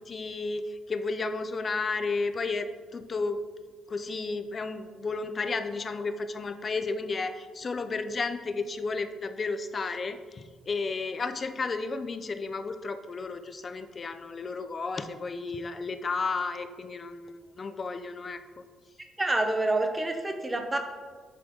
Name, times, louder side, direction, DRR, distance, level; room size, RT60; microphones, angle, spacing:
voice 1, 0.0-3.4 3.9-18.7, left 3 dB, 40° left, 10 dB, 0.5 m, -33 dB
voice 2, 19.2-20.8, right 2 dB, 15° right, 5 dB, 0.8 m, -27 dB
7.3 x 4.0 x 3.7 m, 1.5 s
cardioid pair, 90°, 0 cm